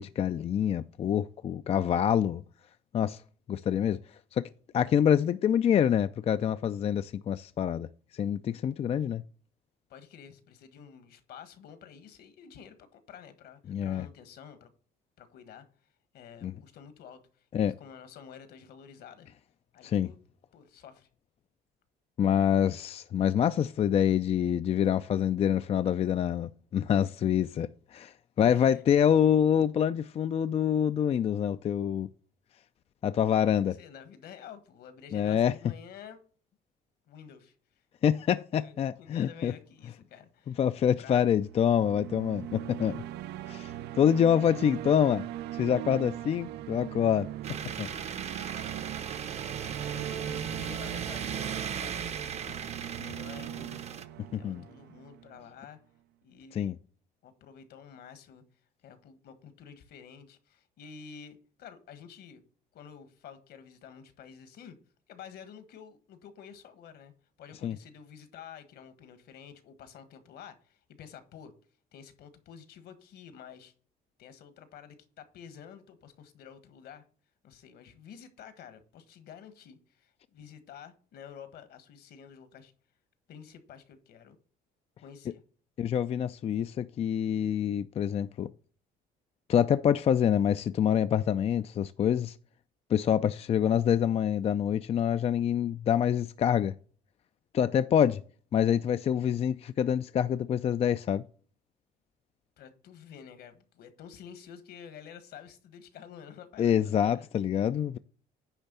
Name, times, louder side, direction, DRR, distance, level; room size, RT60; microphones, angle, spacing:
voice 1, 0.0-2.4 2.9-3.2 3.5-4.0 4.3-4.5 4.7-7.9 8.1-9.2 13.7-14.1 16.4-16.5 17.5-17.7 19.8-20.1 22.2-32.1 33.0-33.7 35.1-35.5 38.0-39.5 40.5-42.9 43.5-45.3 45.5-47.3 47.8-47.9 48.6-48.7 54.3-54.6 56.5-56.8 67.6-67.8 85.8-88.5 89.5-92.3 92.9-96.7 97.5-98.2 98.5-101.2 106.6-108.0, left 9 dB, 35° left, 0.4 m, -26 dB
voice 2, 9.9-14.7 15.2-15.6 16.1-19.3 19.7-20.2 20.5-21.1 28.4-28.8 33.7-36.2 37.1-37.8 38.5-40.6 41.0-41.3 49.9-52.4 52.9-53.8 54.4-55.8 56.2-56.6 57.2-58.4 58.8-62.4 62.7-64.8 65.1-67.1 67.4-71.5 71.9-73.7 74.2-77.0 77.4-82.7 83.3-84.4 85.0-85.4 102.6-107.3, left 8 dB, 70° left, 1.5 m, -50 dB
sound 1, 41.4-55.6, right 13 dB, 75° right, 0.5 m, -40 dB
sound 2, 47.4-54.1, right 7 dB, 40° right, 0.8 m, -37 dB
10.0 x 3.4 x 6.7 m
cardioid pair, 110°, 17 cm